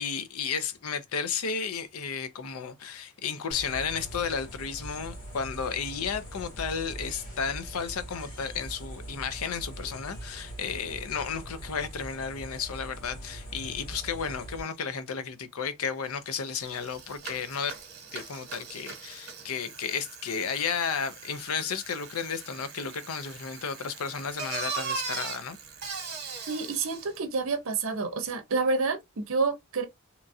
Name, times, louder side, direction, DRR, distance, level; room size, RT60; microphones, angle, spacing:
voice 1, 0.0-17.7 18.1-25.6, left 6 dB, 90° left, 0.5 m, -33 dB
sound 1, 3.5-14.6, right 1 dB, 60° left, 1.7 m, -42 dB
Bicycle, 16.0-16.1 16.4-27.2, right 5 dB, 50° right, 1.0 m, -40 dB
voice 2, 26.5-29.9, right 4 dB, 70° right, 0.6 m, -28 dB
2.9 x 2.3 x 2.6 m
head